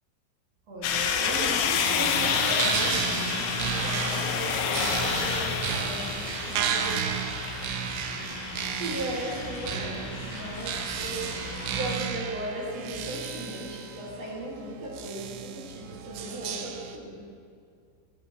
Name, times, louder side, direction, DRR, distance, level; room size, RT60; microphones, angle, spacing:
voice 1, 0.7-7.0 7.6-8.3 8.8-11.2 11.7-17.2, right 1 dB, 45° right, -6 dB, 2.6 m, -37 dB
sound 1, 0.8-12.0, left 7 dB, 80° left, 2.8 m, -30 dB
sound 2, 2.1-17.0, right 7 dB, 80° right, 2.6 m, -33 dB
15.0 x 9.5 x 3.0 m, 2.3 s
omnidirectional pair, 5.1 m